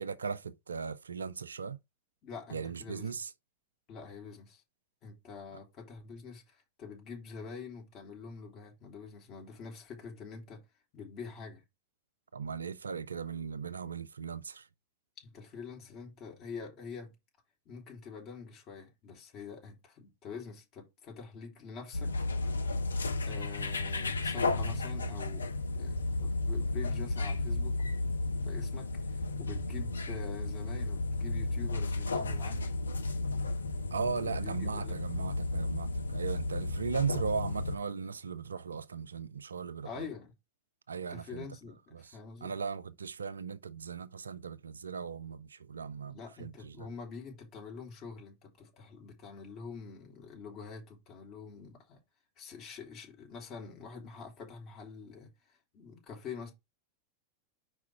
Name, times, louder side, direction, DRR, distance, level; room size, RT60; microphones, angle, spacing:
voice 1, 0.0-1.8 2.5-3.3 12.3-14.7 33.9-40.1 40.9-41.5 41.9-46.9, right 6 dB, 70° right, 0.4 m, -38 dB
voice 2, 2.2-3.1 3.9-4.6 5.0-10.6 10.9-11.6 15.2-17.1 17.6-22.1 23.2-27.8 28.3-32.6 34.2-35.0 39.8-40.3 41.1-42.5 46.1-52.0 52.4-56.5, left 5 dB, 35° left, 3.2 m, -46 dB
sound 1, 21.9-37.8, left 2 dB, 75° left, 0.6 m, -33 dB
4.8 x 4.7 x 4.3 m
figure-of-eight pair, 90°, 0 cm